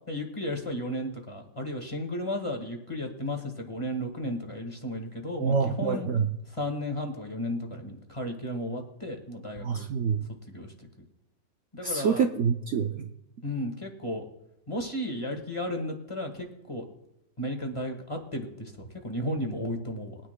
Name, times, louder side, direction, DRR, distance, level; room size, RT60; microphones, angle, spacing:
voice 1, 0.1-6.1 6.5-9.9 10.5-10.9 11.7-12.3 13.4-14.2 14.7-16.8 17.4-20.2, left 1 dB, 20° left, 3 dB, 1.4 m, -34 dB
voice 2, 5.4-6.3 9.6-10.2 11.8-13.1, right 6 dB, 80° right, 5 dB, 0.6 m, -26 dB
21.5 x 9.7 x 2.2 m, 0.86 s
omnidirectional pair, 1.9 m